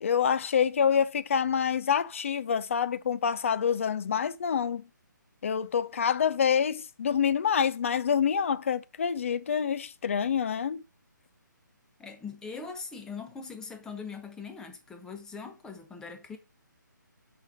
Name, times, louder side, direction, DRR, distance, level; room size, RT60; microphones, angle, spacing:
voice 1, 0.0-4.8 5.4-10.8, left 7 dB, 40° left, 0.5 m, -27 dB
voice 2, 12.0-16.4, left 5 dB, 5° left, 0.8 m, -41 dB
7.0 x 5.2 x 5.3 m
figure-of-eight pair, 145°, 11 cm